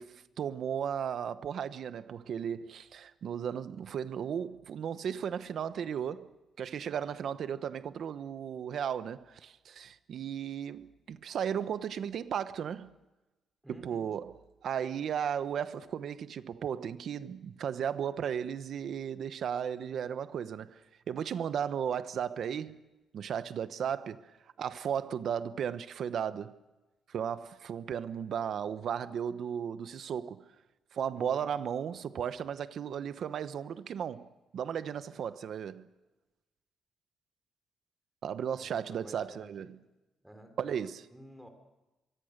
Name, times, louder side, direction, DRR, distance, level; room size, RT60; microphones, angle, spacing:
voice 1, 0.0-6.3 6.6-12.9 13.7-14.4 14.6-20.8 21.1-22.8 23.1-24.3 24.6-26.5 27.1-30.4 30.9-35.9 38.2-39.8 40.6-41.0, right 8 dB, 55° right, 1.0 m, -35 dB
voice 2, 13.6-14.1 31.1-31.5 35.1-35.2 38.6-39.7 40.2-41.5, right 1 dB, 5° right, 4.0 m, -52 dB
25.5 x 23.5 x 6.7 m
cardioid pair, 160°, 0 cm